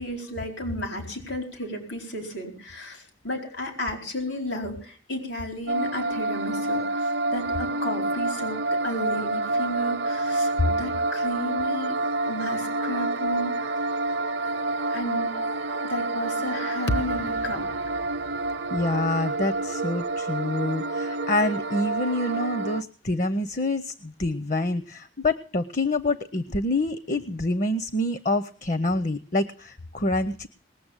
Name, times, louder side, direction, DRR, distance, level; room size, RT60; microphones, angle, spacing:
voice 1, 0.0-12.0 12.2-13.7 14.9-15.3 15.8-17.6, equal, 90° left, 3 dB, 4.4 m, -33 dB
sound 1, 5.7-22.8, right 2 dB, 65° right, 0.6 m, -28 dB
sound 2, 16.9-21.2, equal, 70° left, 1.1 m, -36 dB
voice 2, 18.7-30.5, left 2 dB, 40° left, 13 dB, 0.6 m, -27 dB
20.0 x 6.8 x 8.9 m, 0.44 s
head